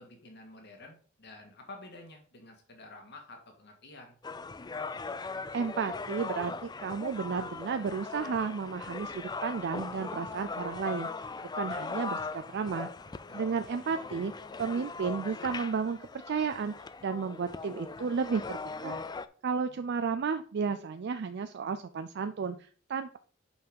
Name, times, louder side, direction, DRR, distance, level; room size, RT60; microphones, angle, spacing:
voice 1, 0.0-4.2 13.3-13.5, left 2 dB, 55° left, 3 dB, 1.9 m, -50 dB
sound 1, 4.2-19.3, left 4 dB, 20° left, 0.4 m, -39 dB
voice 2, 5.5-6.5 6.8-11.1 11.5-12.9 13.3-14.3 14.6-16.0 16.3-16.7 17.0-19.0 19.4-23.2, right 5 dB, 55° right, 9 dB, 0.4 m, -33 dB
5.6 x 5.6 x 5.2 m, 0.43 s
head